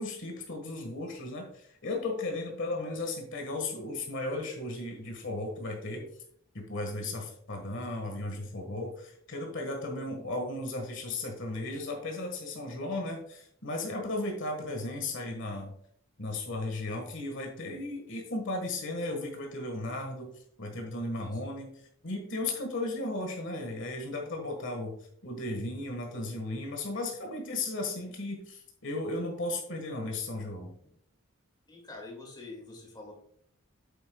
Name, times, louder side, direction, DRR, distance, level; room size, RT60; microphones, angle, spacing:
voice 1, 0.0-6.1 6.5-15.7 16.2-20.3 20.6-21.7 22.0-25.0 25.2-30.7, left 2 dB, 60° left, 2 dB, 1.6 m, -35 dB
voice 2, 21.1-21.6 30.8-30.9 31.7-33.1, left 2 dB, 20° left, 0 dB, 2.2 m, -46 dB
8.6 x 8.5 x 2.3 m, 0.65 s
head